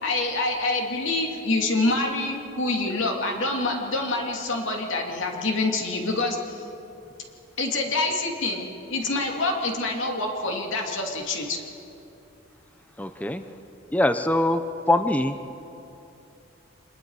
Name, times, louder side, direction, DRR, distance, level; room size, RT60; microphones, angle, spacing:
voice 1, 0.0-6.6 7.6-11.6, left 2 dB, 65° left, 1 dB, 2.6 m, -26 dB
voice 2, 13.0-13.4 13.9-14.6 14.9-15.4, left 1 dB, 5° left, 9 dB, 0.6 m, -22 dB
26.5 x 21.0 x 4.9 m, 2.8 s
head